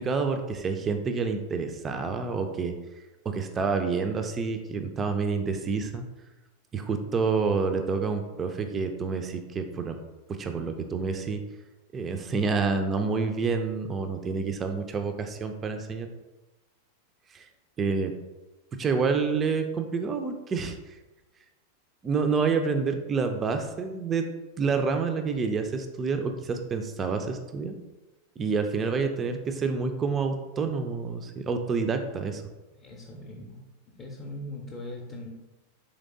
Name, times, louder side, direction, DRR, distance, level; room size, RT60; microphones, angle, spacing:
voice 1, 0.0-2.7 3.3-6.0 6.7-10.0 10.3-11.4 11.9-16.1 17.3-17.5 17.8-18.1 18.8-21.0 22.0-24.3 24.6-27.8 28.4-32.4, right 4 dB, 20° right, 6 dB, 0.3 m, -28 dB
voice 2, 32.8-33.6 33.9-35.3, left 1 dB, 30° left, -2 dB, 0.5 m, -40 dB
4.0 x 3.1 x 2.5 m, 1.1 s
figure-of-eight pair, 90°, 0 cm